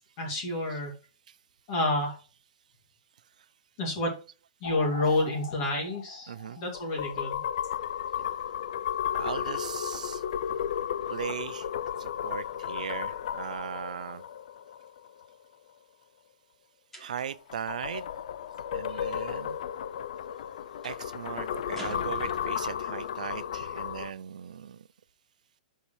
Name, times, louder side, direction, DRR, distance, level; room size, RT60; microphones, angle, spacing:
voice 1, 0.2-0.9 1.7-2.2 3.8-4.1 4.6-7.4, left 2 dB, 35° left, 2.5 m, -29 dB
sound 1, 4.6-15.2 17.2-24.1, left 9 dB, 60° left, 0.4 m, -34 dB
voice 2, 6.3-6.6 9.1-10.2 11.1-11.7 12.0-14.2 17.0-18.1 18.7-19.6 20.8-24.8, right 8 dB, 85° right, 0.4 m, -38 dB
sound 2, 16.9-17.5 20.8-21.1 21.8-22.8, right 1 dB, 5° left, 1.3 m, -45 dB
7.2 x 5.6 x 3.1 m
hypercardioid pair, 165°, 4 cm